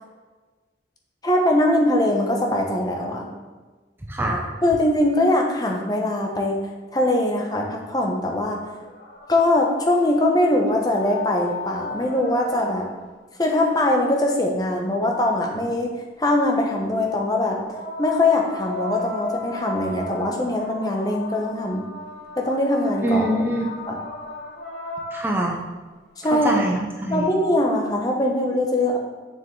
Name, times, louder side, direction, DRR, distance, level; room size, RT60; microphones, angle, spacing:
voice 1, 1.2-3.3 4.6-6.6 6.9-8.6 9.3-12.9 13.4-15.9 16.2-17.6 18.0-21.8 22.4-23.5 23.9-24.0 26.2-26.5 27.1-29.0, left 1 dB, 20° left, 1 dB, 0.9 m, -21 dB
voice 2, 4.1-4.4 23.0-23.7 25.1-25.6 26.3-27.3, right 1 dB, 10° right, -1 dB, 0.6 m, -24 dB
sound 1, 8.4-13.2 17.5-25.7 27.1-27.2, left 2 dB, 75° left, 2.2 m, -36 dB
7.0 x 6.3 x 3.8 m, 1.3 s
head